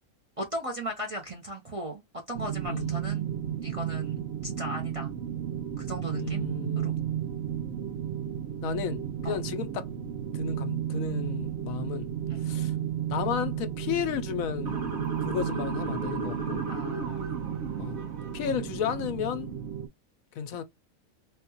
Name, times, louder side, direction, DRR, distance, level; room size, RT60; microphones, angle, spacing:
voice 1, 0.4-2.0 2.3-3.3 3.6-5.1 5.8-6.5 6.8-7.0 9.2-9.4 12.3-12.4 16.7-17.4, equal, 35° right, 0.6 m, -37 dB
sound 1, 2.3-19.9, right 10 dB, 55° right, 0.9 m, -33 dB
voice 2, 2.7-3.0 6.1-7.0 8.6-9.9 10.3-12.1 12.4-12.7 13.1-14.8 15.2-16.6 17.8-18.0 18.3-19.5 20.4-20.6, left 9 dB, 80° left, 1.0 m, -33 dB
Motor vehicle (road) / Siren, 14.6-18.8, right 4 dB, 75° right, 1.4 m, -35 dB
3.5 x 2.3 x 2.8 m
omnidirectional pair, 1.5 m